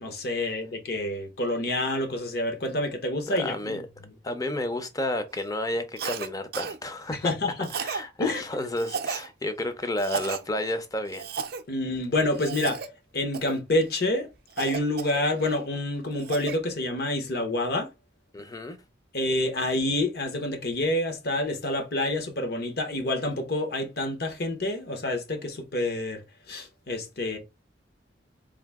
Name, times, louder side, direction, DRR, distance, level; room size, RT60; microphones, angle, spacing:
voice 1, 0.0-3.8 7.1-7.7 8.2-8.4 11.7-12.8 13.1-14.3 14.6-17.9 19.1-26.2 26.5-27.4, left 1 dB, 55° left, 1.0 m, -28 dB
voice 2, 3.3-3.8 4.2-11.3 18.3-18.8, left 1 dB, 20° left, 0.6 m, -31 dB
Cough, 6.0-6.3 6.5-6.8 7.6-8.0 8.8-9.3 10.0-10.4 11.1-11.6 12.3-12.9 13.3-13.6 14.6-15.5 16.0-16.6, right 5 dB, 55° right, 0.5 m, -33 dB
3.8 x 2.7 x 3.5 m
head